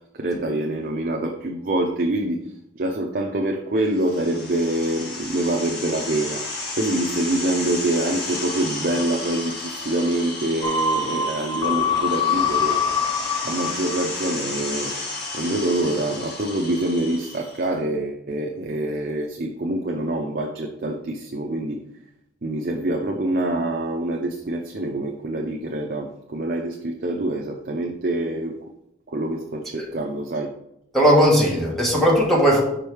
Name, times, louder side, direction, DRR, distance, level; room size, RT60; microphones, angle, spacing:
voice 1, 0.1-2.4 2.8-6.4 6.8-12.8 13.4-14.9 15.3-21.8 22.4-28.5 29.1-30.5, right 1 dB, 50° right, 2 dB, 0.6 m, -25 dB
sound 1, 3.9-17.7, left 2 dB, 60° left, 1.9 m, -33 dB
sound 2, 10.6-14.4 14.7-14.8, left 5 dB, 20° left, 0.5 m, -24 dB
voice 2, 30.9-32.6, equal, ahead, -3 dB, 1.7 m, -17 dB
5.4 x 5.0 x 4.6 m, 0.79 s
head